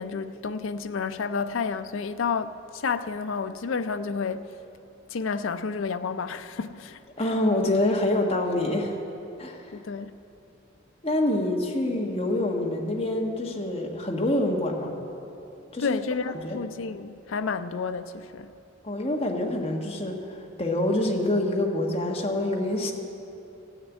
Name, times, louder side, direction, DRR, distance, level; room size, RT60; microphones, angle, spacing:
voice 1, 0.0-4.4 5.1-7.0 9.7-10.1 15.8-18.5, left 5 dB, 80° left, 0.5 m, -30 dB
voice 2, 7.2-9.0 9.4-9.6 11.0-15.0 15.7-16.0 16.4-16.6 18.8-22.9, left 1 dB, 30° left, 1.3 m, -26 dB
15.0 x 6.6 x 9.0 m
head